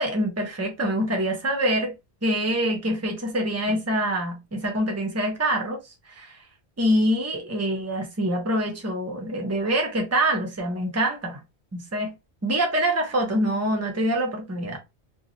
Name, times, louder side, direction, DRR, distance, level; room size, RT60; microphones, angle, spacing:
voice 1, 0.0-1.9 2.2-5.8 6.1-6.4 6.8-11.4 11.7-12.1 12.4-14.8, right 1 dB, 15° right, 0.7 m, -25 dB
3.0 x 2.3 x 2.6 m
omnidirectional pair, 1.1 m